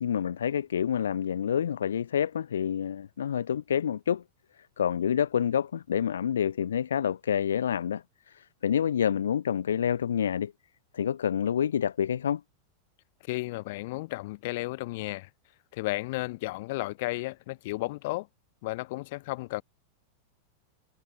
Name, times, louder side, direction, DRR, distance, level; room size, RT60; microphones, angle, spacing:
voice 1, 0.0-4.2 4.8-10.5 10.9-12.4, left 8 dB, 65° left, 0.7 m, -28 dB
voice 2, 13.3-15.3 15.7-18.3 18.6-19.6, left 21 dB, 50° left, 3.9 m, -33 dB
figure-of-eight pair, 90°, 0 cm